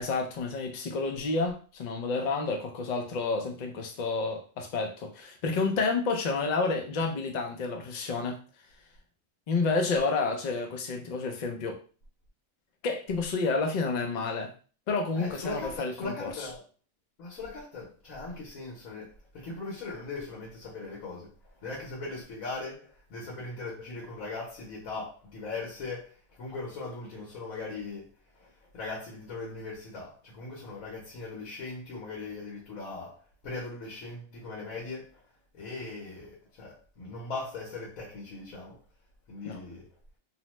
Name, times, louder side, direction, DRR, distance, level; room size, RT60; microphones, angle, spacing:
voice 1, 0.0-8.4 9.5-11.8 12.8-14.5 14.9-16.3 39.4-39.6, left 3 dB, 60° left, 0.4 m, -30 dB
voice 2, 15.1-16.6 17.2-28.1 28.3-33.2 33.4-35.2 35.5-38.8 39.3-39.9, left 3 dB, 90° left, 1.3 m, -39 dB
2.9 x 2.1 x 3.0 m
omnidirectional pair, 1.4 m